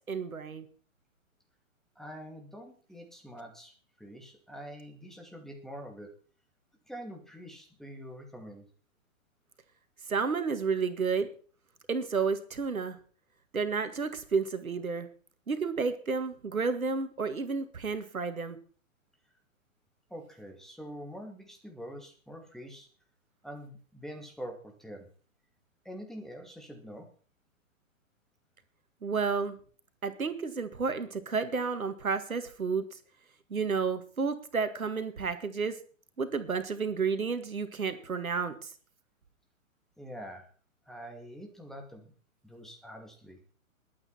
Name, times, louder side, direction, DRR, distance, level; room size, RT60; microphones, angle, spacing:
voice 1, 0.1-0.7 10.1-11.3 11.9-13.0 13.5-15.1 15.5-18.6 29.0-29.6 30.0-32.8 33.5-35.7 36.2-38.7, right 5 dB, 80° right, 10 dB, 1.9 m, -31 dB
voice 2, 2.0-6.1 6.9-8.7 20.1-22.9 23.4-25.1 25.8-27.1 40.0-40.5 40.9-42.1 42.4-43.4, equal, ahead, 2 dB, 2.5 m, -45 dB
21.5 x 8.8 x 4.4 m, 0.42 s
figure-of-eight pair, 120°, 41 cm